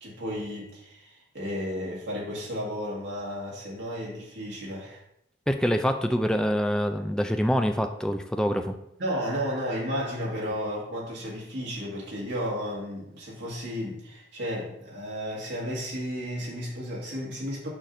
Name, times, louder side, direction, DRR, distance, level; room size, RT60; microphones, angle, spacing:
voice 1, 0.0-5.0 9.0-17.7, equal, 75° right, -4 dB, 1.9 m, -33 dB
voice 2, 5.5-8.7, equal, 5° left, 6 dB, 0.3 m, -25 dB
6.5 x 5.8 x 2.6 m, 0.80 s
head